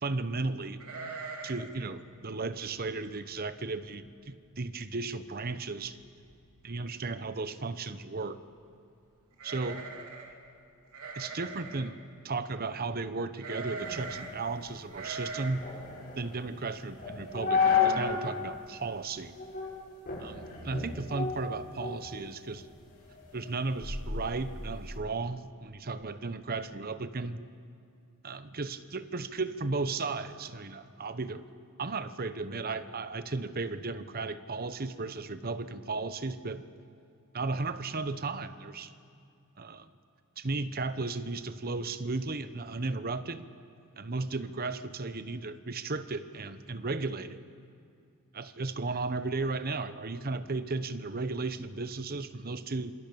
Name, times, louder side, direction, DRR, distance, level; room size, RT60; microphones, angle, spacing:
voice 1, 0.0-0.8 1.4-6.0 6.6-8.4 9.4-9.8 11.1-12.0 12.2-15.6 16.2-19.3 20.2-22.7 23.3-27.5 28.2-31.4 31.8-36.6 37.3-38.9 39.6-39.9 40.4-43.5 44.0-47.4 48.3-52.9, right 3 dB, 45° right, 12 dB, 0.9 m, -35 dB
sound 1, 0.8-1.8 2.0-2.1 2.6-2.9 3.4-3.5 3.8-4.3 4.6-4.7 5.9-6.0 6.3-6.7 9.3-10.4 10.9-11.9 13.4-14.4 14.9-15.5, right 4 dB, 85° right, 3.1 m, -41 dB
sound 2, 13.8-18.3 18.6-18.7 19.3-19.7 20.1-22.1 22.5-25.0, left 6 dB, 40° left, 6.9 m, -32 dB
27.0 x 25.0 x 7.0 m, 2.5 s
head